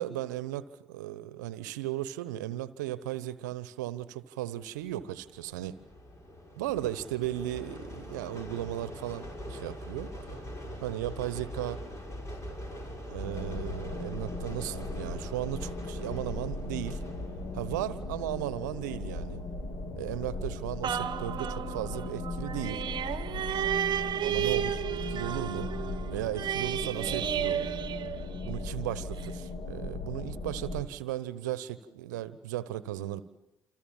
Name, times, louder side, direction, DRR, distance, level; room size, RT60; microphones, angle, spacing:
voice 1, 0.0-5.8 6.6-10.1 10.8-11.8 13.1-17.0 17.5-19.4 20.0-22.8 24.2-25.7 26.1-27.8 28.4-33.2, right 13 dB, 80° right, 16 dB, 1.0 m, -36 dB
sound 1, 4.7-21.2, equal, 30° left, 6.2 m, -43 dB
sound 2, 13.2-30.8, left 2 dB, 50° left, 3.7 m, -38 dB
sound 3, 20.8-28.7 29.2-29.3, right 9 dB, 50° right, 1.2 m, -33 dB
28.5 x 27.0 x 7.4 m, 0.91 s
hypercardioid pair, 50°, 10 cm